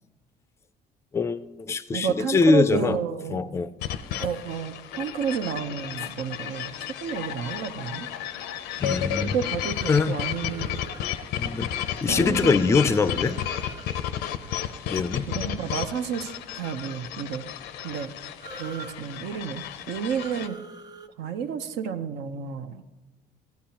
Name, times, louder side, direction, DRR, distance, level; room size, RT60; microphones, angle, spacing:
voice 1, 1.1-3.0 3.3-3.7 8.8-9.4 9.9-10.2 11.4-11.7 12.0-13.4 14.9-15.3, left 4 dB, 15° left, 0.3 m, -23 dB
voice 2, 1.9-3.4 4.2-8.1 9.2-10.8 12.1-12.5 15.3-17.5 17.8-18.1 18.6-20.6 21.2-22.8, right 7 dB, 85° right, 0.7 m, -31 dB
sound 1, 3.8-20.5, left 10 dB, 85° left, 0.6 m, -33 dB
sound 2, 9.6-11.0 12.5-13.9 18.4-19.0 20.2-21.1, right 5 dB, 25° right, 0.6 m, -44 dB
15.5 x 9.3 x 2.9 m
cardioid pair, 110°, 17 cm